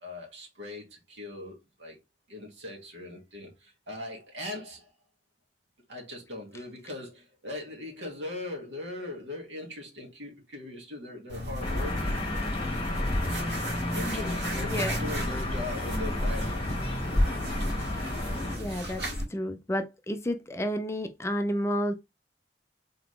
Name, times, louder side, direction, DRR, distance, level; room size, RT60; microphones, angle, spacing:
voice 1, 0.0-2.0 2.3-4.9 5.9-12.2 13.9-16.7, left 2 dB, 90° right, 1.9 m, -40 dB
sound 1, 11.3-19.2, equal, 70° right, 2.2 m, -32 dB
sound 2, 11.6-18.6, left 2 dB, 30° left, 1.4 m, -33 dB
voice 2, 13.9-14.3 14.6-15.0 18.5-19.0 19.3-21.9, equal, 15° left, 0.4 m, -31 dB
4.0 x 3.9 x 3.2 m
head